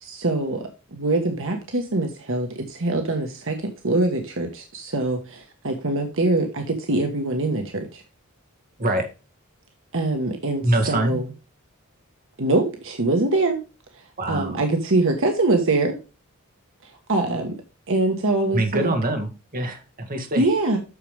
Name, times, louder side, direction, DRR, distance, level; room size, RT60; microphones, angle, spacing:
voice 1, 0.0-3.6 3.8-8.0 9.9-11.2 12.4-13.6 14.3-15.9 16.8-17.6 17.9-18.9 20.3-20.8, right 2 dB, 60° right, 4 dB, 1.4 m, -23 dB
voice 2, 10.6-11.2 14.2-14.6 18.5-20.5, right 1 dB, 40° right, 4 dB, 2.0 m, -24 dB
8.5 x 6.7 x 3.4 m, 0.31 s
head